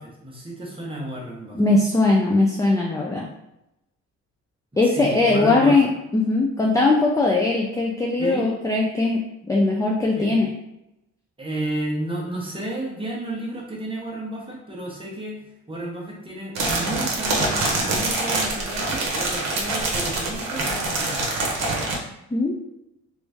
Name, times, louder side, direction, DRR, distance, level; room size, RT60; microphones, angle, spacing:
voice 1, 0.0-1.6 4.8-5.8 8.2-8.5 10.1-10.3 11.4-15.4 15.7-21.2, right 1 dB, 15° right, -3 dB, 1.1 m, -32 dB
voice 2, 1.5-3.3 4.8-5.9 6.1-9.2 9.5-10.5 22.3-22.5, left 2 dB, 10° left, -1 dB, 0.4 m, -20 dB
sound 1, 16.5-22.0, right 2 dB, 60° right, 1.0 m, -25 dB
3.0 x 2.7 x 3.5 m, 0.87 s
cardioid pair, 90°, 30 cm